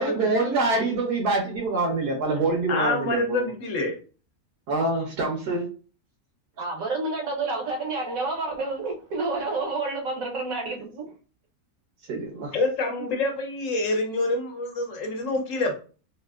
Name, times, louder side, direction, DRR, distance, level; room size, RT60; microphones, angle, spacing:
voice 1, 0.0-3.5 4.7-5.7 12.1-12.5, right 3 dB, 85° right, 1.5 m, -25 dB
voice 2, 2.7-4.0 12.5-15.7, left 2 dB, 65° left, 1.0 m, -26 dB
voice 3, 6.6-11.1, right 3 dB, 70° right, 1.1 m, -29 dB
3.5 x 2.5 x 2.3 m
omnidirectional pair, 1.6 m